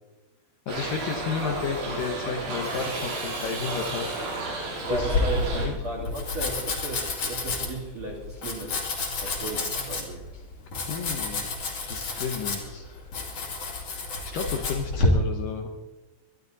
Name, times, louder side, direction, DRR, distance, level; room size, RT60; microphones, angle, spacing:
voice 1, 0.7-4.4 4.9-5.1 5.6-5.8 9.2-9.3 10.9-11.5 11.9-12.9 14.3-15.7, left 6 dB, 75° left, 4 dB, 2.0 m, -32 dB
Shout / Livestock farm animals working animals, 0.7-5.7, right 2 dB, 90° right, 6.6 m, -32 dB
Domestic sounds home sounds, 4.9-15.1, left 3 dB, 40° left, 3.0 m, -30 dB
voice 2, 4.9-8.9 9.2-10.3, right 2 dB, 40° right, 0 dB, 3.1 m, -35 dB
22.5 x 12.0 x 4.1 m, 1.1 s
omnidirectional pair, 5.4 m